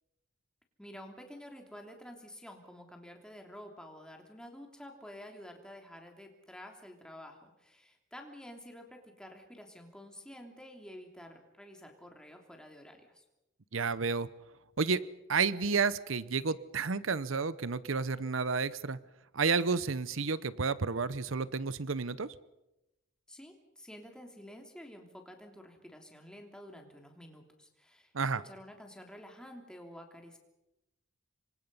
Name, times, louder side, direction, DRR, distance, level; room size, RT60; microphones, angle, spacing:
voice 1, 0.8-13.2 23.3-30.4, equal, 5° left, 3 dB, 3.1 m, -50 dB
voice 2, 13.7-14.3 14.8-15.0 15.3-19.0 19.3-22.3 28.1-28.4, right 5 dB, 85° right, 16 dB, 0.8 m, -31 dB
27.5 x 24.0 x 5.6 m, 0.93 s
head